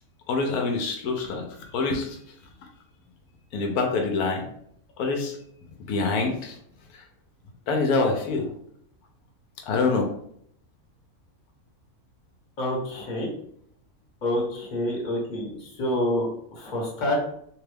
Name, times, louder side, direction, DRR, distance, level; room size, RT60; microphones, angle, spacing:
voice 1, 0.3-2.7 3.5-4.5 5.0-5.4 5.9-6.6 6.9-7.0 7.7-8.5 9.6-10.1, left 3 dB, 85° left, 2 dB, 1.1 m, -26 dB
voice 2, 12.6-13.3 14.2-17.2, left 1 dB, 35° left, -2 dB, 1.0 m, -27 dB
3.1 x 2.3 x 3.3 m, 0.66 s
omnidirectional pair, 1.5 m